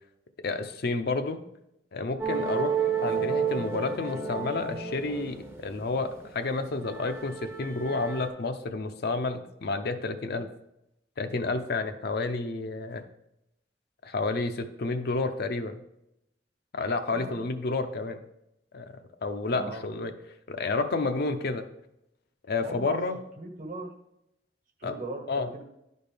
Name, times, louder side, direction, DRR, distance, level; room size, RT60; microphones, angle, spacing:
voice 1, 0.4-1.4 1.9-2.8 3.0-10.5 11.2-13.0 14.0-15.8 16.7-18.2 18.7-18.9 19.2-20.1 20.5-21.6 22.5-23.2 24.8-24.9 25.3-25.5, left 3 dB, 60° left, 7 dB, 0.6 m, -30 dB
sound 1, 2.2-6.3 6.7-8.3, right 6 dB, 15° right, 0.7 m, -31 dB
voice 2, 19.5-19.8 22.6-23.0 23.4-23.9 24.8-25.6, right 2 dB, 50° right, 3 dB, 1.3 m, -38 dB
11.0 x 4.3 x 3.4 m, 0.83 s
head